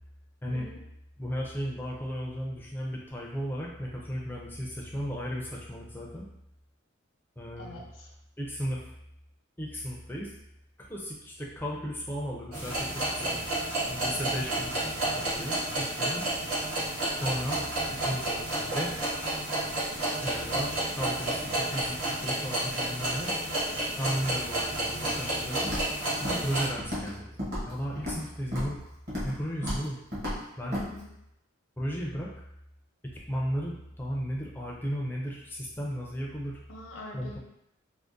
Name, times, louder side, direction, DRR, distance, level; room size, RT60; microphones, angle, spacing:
voice 1, 0.5-0.8 7.6-8.1 30.6-31.1 36.7-37.4, left 1 dB, 70° left, -1 dB, 0.6 m, -44 dB
voice 2, 1.2-6.3 7.4-7.8 8.4-8.9 9.6-10.3 10.8-13.4 13.8-16.3 17.2-17.7 18.0-18.9 20.2-23.4 24.0-25.7 26.2-28.8 29.2-30.0 30.6-30.8 31.8-32.3 33.1-36.6 37.1-37.4, equal, 10° left, -3 dB, 0.4 m, -35 dB
sound 1, 12.5-26.7, right 1 dB, 85° right, 1.4 m, -31 dB
Walk footsteps, 25.7-26.0 26.2-26.5 26.8-27.1 27.4-28.2 28.5-28.8 29.1-29.4 29.6-29.9 30.1-30.4 30.7-30.9, equal, 45° right, 1.0 m, -33 dB
3.5 x 2.1 x 2.5 m, 0.82 s
head